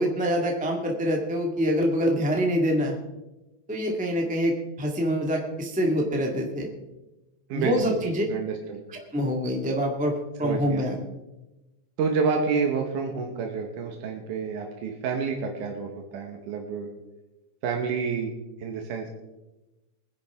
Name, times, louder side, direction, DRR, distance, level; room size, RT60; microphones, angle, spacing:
voice 1, 0.0-3.0 3.7-6.7 7.5-8.3 8.9-11.0, equal, 5° right, 0 dB, 0.9 m, -25 dB
voice 2, 7.5-8.8 10.4-10.8 12.0-16.9 17.6-18.3 18.6-19.1, right 5 dB, 90° right, 2 dB, 2.8 m, -29 dB
23.0 x 10.5 x 3.6 m, 1.0 s
omnidirectional pair, 3.5 m